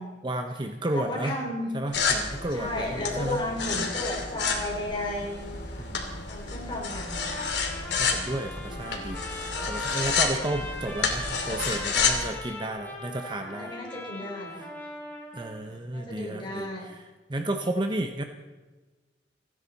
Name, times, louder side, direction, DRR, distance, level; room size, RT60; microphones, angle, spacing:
voice 1, 0.2-1.4 1.7-3.4 5.8-6.3 8.0-13.7 14.6-14.7 15.3-17.0 17.3-18.2, right 1 dB, 25° right, 5 dB, 0.8 m, -32 dB
voice 2, 0.9-1.7 2.5-5.9 6.3-7.6 13.5-14.6 15.6-17.0, left 1 dB, 30° left, -1 dB, 3.9 m, -34 dB
sound 1, 1.9-12.3, left 5 dB, 80° left, 2.7 m, -30 dB
Trumpet, 7.0-15.6, left 1 dB, 10° left, 2.7 m, -40 dB
29.5 x 10.0 x 4.2 m, 1.3 s
head